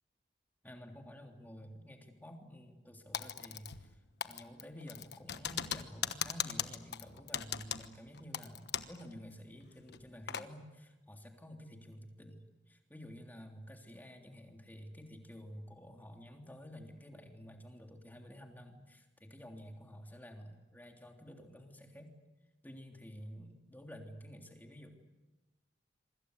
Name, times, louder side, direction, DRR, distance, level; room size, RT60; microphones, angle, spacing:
voice 1, 0.6-4.0 4.2-22.1 22.6-24.9, equal, 10° left, 3 dB, 3.3 m, -51 dB
Typing, 3.1-3.9 4.2-9.0 9.3-9.4 9.9-10.5, left 9 dB, 65° left, 1.2 m, -39 dB
26.5 x 25.0 x 8.1 m, 1.1 s
head